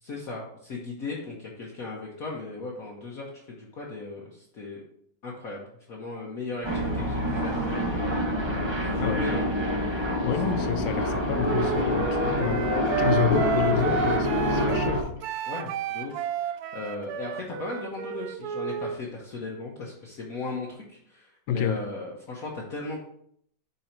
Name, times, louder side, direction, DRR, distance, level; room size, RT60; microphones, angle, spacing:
voice 1, 0.0-4.8 5.2-7.7 8.5-10.3 10.6-10.9 15.5-23.1, left 3 dB, 50° left, 1.3 m, -37 dB
sound 1, 6.6-15.0, equal, 15° right, 1.0 m, -26 dB
voice 2, 10.2-12.7 13.0-15.2 21.5-21.8, left 7 dB, 80° left, 1.4 m, -28 dB
Wind instrument woodwind instrument, 11.4-19.0, right 8 dB, 80° right, 0.8 m, -31 dB
5.5 x 5.4 x 4.3 m
omnidirectional pair, 2.2 m